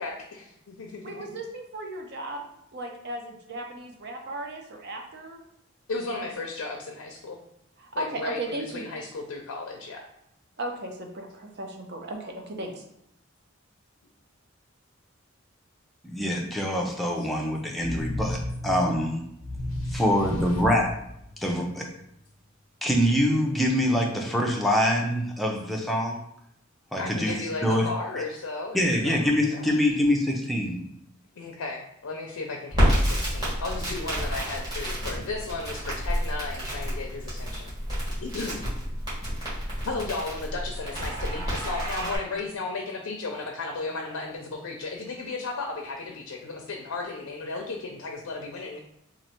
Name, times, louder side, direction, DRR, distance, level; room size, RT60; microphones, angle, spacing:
voice 1, 0.0-1.1 5.9-7.4 7.9-10.1 19.7-20.0 27.0-29.7 31.4-37.7 38.2-38.7 39.4-39.5 39.9-48.8, left 3 dB, 85° left, 1 dB, 0.5 m, -35 dB
voice 2, 1.0-2.4 2.7-5.4 6.2-6.3 7.8-8.9 10.6-12.8, right 1 dB, 50° right, 2 dB, 0.6 m, -36 dB
voice 3, 16.0-19.2 19.9-20.9 21.4-21.8 22.8-26.2 26.9-27.3 27.6-27.9 28.7-30.8, equal, ahead, -1 dB, 0.5 m, -24 dB
sound 1, 17.8-21.8, left 1 dB, 75° right, 1.3 m, -34 dB
Crackle, 32.7-42.2, equal, 20° right, 1.4 m, -29 dB
3.1 x 2.6 x 4.2 m, 0.76 s
head